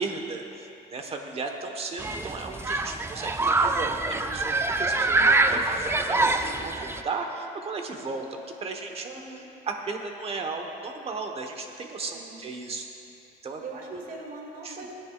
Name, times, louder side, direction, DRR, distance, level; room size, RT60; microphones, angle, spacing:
voice 1, 0.0-3.9 4.3-6.4 6.6-8.3 8.6-9.0 9.7-12.9 13.4-13.6 13.9-14.0 14.6-14.8, right 4 dB, 35° right, 3 dB, 1.2 m, -35 dB
Human group actions, 2.0-7.0, right 2 dB, 15° right, 0.5 m, -25 dB
voice 2, 3.9-4.3 5.9-6.8 9.0-9.5 12.1-12.4 13.6-15.0, right 3 dB, 55° right, -1 dB, 2.3 m, -42 dB
17.5 x 10.5 x 2.4 m, 2.7 s
cardioid pair, 110°, 17 cm